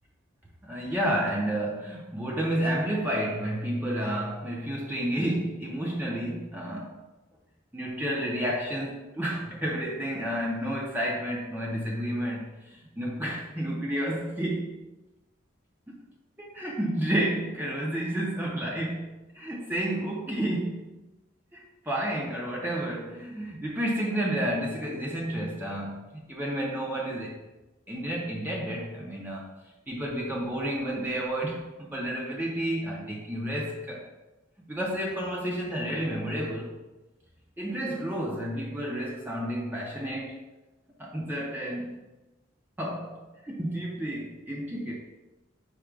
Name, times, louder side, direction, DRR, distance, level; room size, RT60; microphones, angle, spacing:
voice 1, 0.6-7.0 7.7-14.8 15.9-16.0 16.4-19.1 19.3-21.0 21.5-27.3 27.9-29.5 29.9-34.0 34.7-36.8 37.6-40.4 41.0-42.0 42.8-45.0, right 1 dB, 10° right, -3 dB, 0.5 m, -31 dB
4.9 x 2.2 x 4.5 m, 1.1 s
head